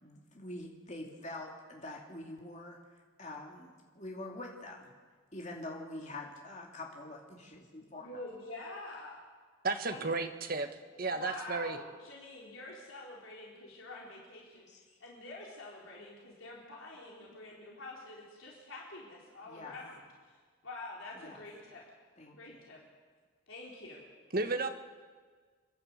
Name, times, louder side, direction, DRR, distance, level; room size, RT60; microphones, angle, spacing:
voice 1, 0.0-2.8 3.2-4.9 5.3-8.1 14.7-15.0 19.5-19.8 21.1-21.4 22.2-22.6, left 2 dB, 35° left, -1 dB, 2.7 m, -45 dB
voice 2, 7.8-9.2 9.8-10.1 11.1-20.0 20.6-21.8 22.4-22.8 23.5-24.0, left 2 dB, 70° left, -4 dB, 3.9 m, -47 dB
voice 3, 9.6-10.7 11.0-11.8 24.3-24.7, right 3 dB, 45° right, 7 dB, 1.3 m, -33 dB
28.5 x 11.5 x 8.0 m, 1.5 s
head